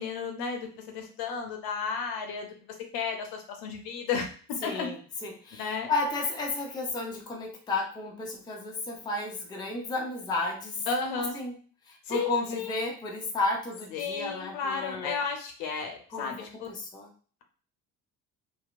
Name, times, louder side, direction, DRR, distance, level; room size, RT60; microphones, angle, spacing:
voice 1, 0.0-2.5 2.9-4.9 5.6-5.9 10.9-11.4 12.0-12.8 13.9-16.7, left 5 dB, 50° left, 4 dB, 0.7 m, -33 dB
voice 2, 4.6-10.9 11.2-11.5 11.9-15.2 16.1-17.1, left 3 dB, 10° left, 0 dB, 0.5 m, -33 dB
2.8 x 2.2 x 2.4 m, 0.42 s
figure-of-eight pair, 60°, 48 cm